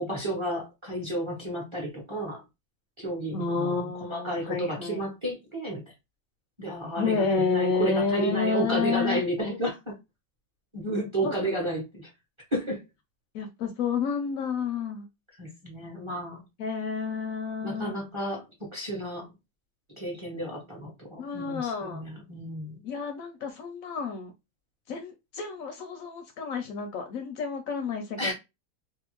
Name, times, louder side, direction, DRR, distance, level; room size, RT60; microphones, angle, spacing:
voice 1, 0.0-2.4 3.0-3.8 4.1-5.8 6.6-9.9 10.7-12.1 12.5-12.8 15.4-16.4 17.6-18.4 18.7-19.3 20.0-22.8 28.2-28.3, right 1 dB, 25° right, 0.8 m, -32 dB
voice 2, 3.3-5.1 7.0-9.2 11.2-11.5 13.3-15.1 16.6-17.9 21.2-22.0 22.8-24.3 24.9-28.3, left 5 dB, 70° left, 0.9 m, -30 dB
2.7 x 2.3 x 2.9 m
omnidirectional pair, 1.7 m